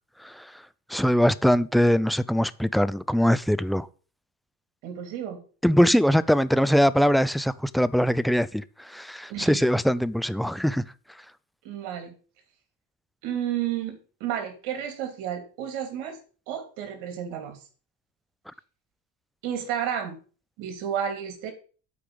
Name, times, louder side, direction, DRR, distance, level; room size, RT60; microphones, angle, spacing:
voice 1, 0.9-3.9 5.6-10.8, equal, ahead, 0.4 m, -22 dB
voice 2, 4.8-5.4 9.3-9.6 11.6-12.1 13.2-16.2 16.5-17.6 19.4-20.2 20.6-21.5, right 9 dB, 80° right, 3.1 m, -31 dB
8.6 x 5.0 x 7.7 m
supercardioid pair, 80°, 42 cm